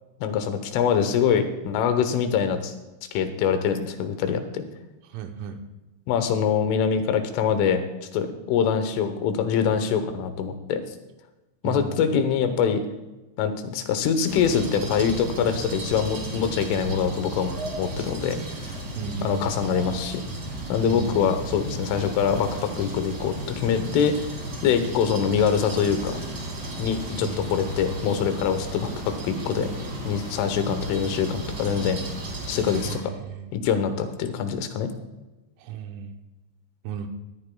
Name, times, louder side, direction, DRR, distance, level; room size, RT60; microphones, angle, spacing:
voice 1, 0.2-2.7 3.1-4.6 6.1-7.8 8.1-10.8 11.6-12.8 13.4-18.4 19.2-20.2 20.7-24.3 24.6-26.2 26.8-29.7 30.1-32.0 32.5-33.0 33.5-34.9, left 7 dB, 75° left, 8 dB, 3.4 m, -24 dB
voice 2, 5.1-5.6 11.6-12.2 16.8-17.1 19.0-19.6 20.8-21.4 27.2-27.5 32.7-33.5 35.6-36.2 36.8-37.1, right 7 dB, 80° right, 6 dB, 3.2 m, -35 dB
sound 1, 14.3-33.0, right 1 dB, 40° right, 1.6 m, -35 dB
20.5 x 13.0 x 2.3 m, 1.0 s
omnidirectional pair, 5.9 m